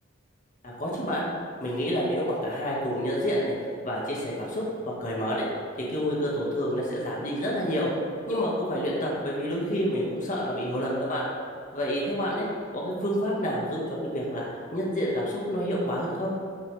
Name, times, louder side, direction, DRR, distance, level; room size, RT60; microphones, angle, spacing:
voice 1, 0.6-1.3 1.6-3.5 3.8-5.5 5.9-7.9 8.3-11.3 11.7-12.5 12.7-16.3, equal, 40° left, -5 dB, 1.6 m, -28 dB
14.0 x 5.4 x 3.4 m, 2.5 s
head